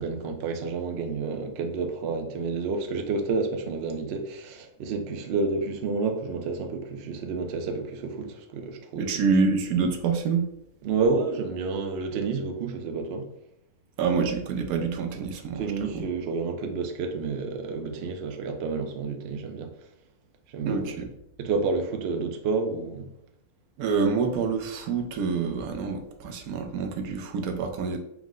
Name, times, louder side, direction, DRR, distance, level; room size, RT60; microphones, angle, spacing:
voice 1, 0.0-9.2 10.8-13.3 15.1-15.3 15.5-19.7 20.5-20.9 21.4-23.1, right 4 dB, 60° right, 0.7 m, -30 dB
voice 2, 9.0-10.5 14.0-16.1 20.6-21.1 23.8-28.0, right 5 dB, 80° right, 1.0 m, -27 dB
4.6 x 2.1 x 3.7 m
omnidirectional pair, 1.5 m